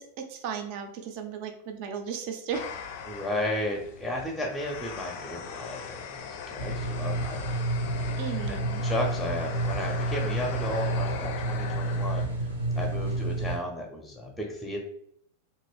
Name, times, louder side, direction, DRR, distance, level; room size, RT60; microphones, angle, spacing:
voice 1, 0.0-2.6 8.2-8.8, right 7 dB, 45° right, 5 dB, 0.5 m, -35 dB
sound 1, 2.5-12.3, left 6 dB, 50° left, 0.5 m, -40 dB
voice 2, 3.1-7.7 8.5-12.3 12.8-14.8, left 1 dB, ahead, 0 dB, 0.7 m, -34 dB
sound 2, 6.6-13.6, right 2 dB, 85° right, 0.8 m, -30 dB
2.9 x 2.7 x 3.2 m, 0.66 s
figure-of-eight pair, 90°, 0 cm